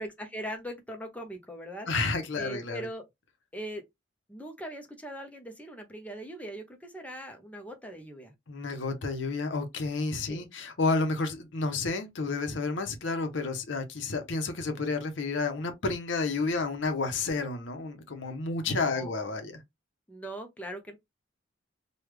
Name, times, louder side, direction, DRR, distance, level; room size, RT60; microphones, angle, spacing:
voice 1, 0.0-1.9 2.4-3.0 3.5-3.8 4.3-8.3 10.3-10.4 18.8-19.1 20.1-21.0, equal, 5° left, 0.6 m, -40 dB
voice 2, 1.9-2.9 8.5-19.6, left 3 dB, 75° left, 0.7 m, -31 dB
3.2 x 2.3 x 3.3 m
head